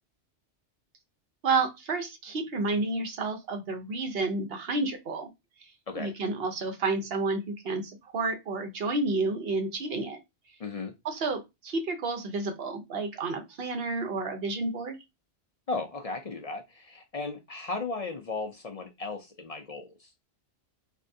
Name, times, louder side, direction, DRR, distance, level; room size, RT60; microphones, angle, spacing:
voice 1, 1.4-5.3 5.6-10.2 11.0-15.0, right 3 dB, 60° right, 1.0 m, -30 dB
voice 2, 10.6-10.9 15.7-19.9, left 3 dB, 50° left, 0.4 m, -35 dB
3.3 x 2.6 x 2.6 m
omnidirectional pair, 1.2 m